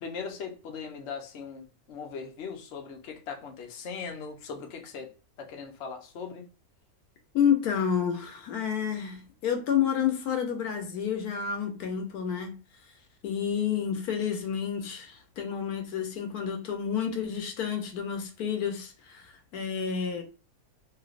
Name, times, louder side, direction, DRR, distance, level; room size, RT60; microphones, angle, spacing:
voice 1, 0.0-5.1 5.4-6.5, left 5 dB, 60° left, 0.8 m, -39 dB
voice 2, 7.3-12.6 13.2-20.2, left 8 dB, 80° left, 1.1 m, -29 dB
3.3 x 2.7 x 2.4 m
omnidirectional pair, 1.6 m